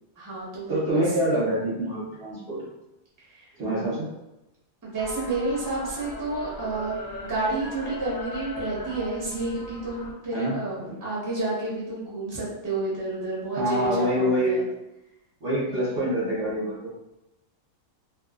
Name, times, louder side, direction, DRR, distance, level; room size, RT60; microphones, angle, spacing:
voice 1, 0.2-1.3 3.2-3.5 4.8-14.6, right 2 dB, 20° right, -7 dB, 0.7 m, -30 dB
voice 2, 0.7-2.6 3.6-4.1 10.3-11.0 13.6-14.6 15.4-16.9, equal, 50° right, -9 dB, 0.9 m, -26 dB
sound 1, 5.0-10.1, left 2 dB, 70° left, 0.4 m, -38 dB
2.5 x 2.3 x 2.3 m, 0.93 s
omnidirectional pair, 1.5 m